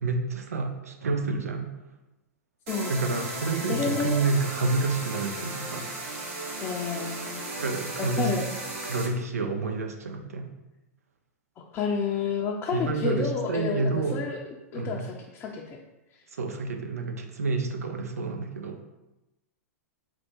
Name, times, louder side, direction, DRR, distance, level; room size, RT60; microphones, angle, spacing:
voice 1, 0.0-1.7 2.9-5.9 7.5-8.3 8.8-10.5 12.7-14.3 14.7-15.1 16.3-18.8, right 3 dB, 75° right, 4 dB, 0.6 m, -29 dB
sound 1, 2.7-9.1, right 2 dB, 55° right, 1.1 m, -36 dB
voice 2, 3.7-4.2 6.6-7.5 8.0-8.5 11.7-14.4 14.7-15.6, left 5 dB, 25° left, -2 dB, 0.5 m, -30 dB
4.4 x 2.3 x 4.4 m, 0.99 s
figure-of-eight pair, 105°, 8 cm